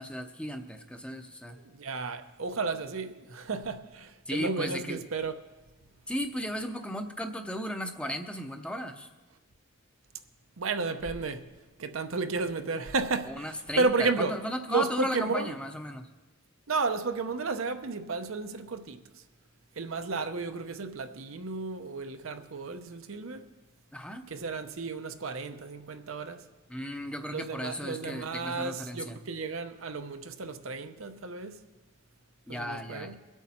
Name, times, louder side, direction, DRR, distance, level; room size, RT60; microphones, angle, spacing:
voice 1, 0.0-1.6 4.3-5.0 6.1-9.1 13.3-16.1 23.9-24.2 26.7-29.2 32.5-33.2, equal, 5° left, 0.7 m, -35 dB
voice 2, 1.7-5.3 10.6-11.4 11.8-13.5 13.8-14.4 14.7-15.5 16.7-19.0 19.8-23.4 24.3-26.4 27.3-31.6 32.5-33.1, right 4 dB, 80° right, 0.8 m, -32 dB
23.0 x 8.2 x 4.3 m
head